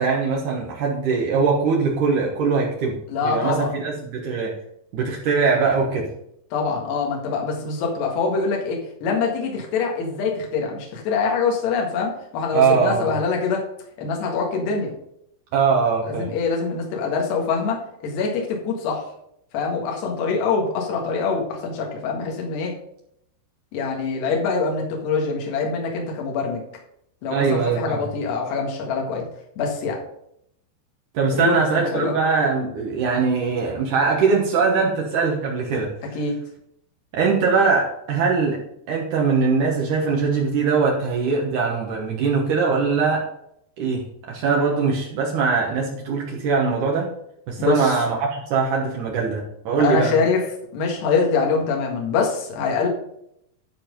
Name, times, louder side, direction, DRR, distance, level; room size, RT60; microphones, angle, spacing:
voice 1, 0.0-3.0 3.2-4.5 4.9-6.1 12.5-13.1 15.5-16.3 27.3-28.0 31.1-35.9 37.1-38.6 38.9-43.2 43.8-44.0 44.3-47.1 47.5-50.2, right 5 dB, 90° right, -2 dB, 1.7 m, -21 dB
voice 2, 3.1-3.7 6.5-13.7 14.0-14.9 16.0-19.0 19.5-22.7 23.7-26.6 27.2-29.2 29.6-30.0 31.3-32.1 36.1-36.4 47.6-48.0 49.8-50.4 50.7-52.9, left 4 dB, 65° left, 0 dB, 3.5 m, -24 dB
13.0 x 4.4 x 5.2 m, 0.75 s
omnidirectional pair, 5.5 m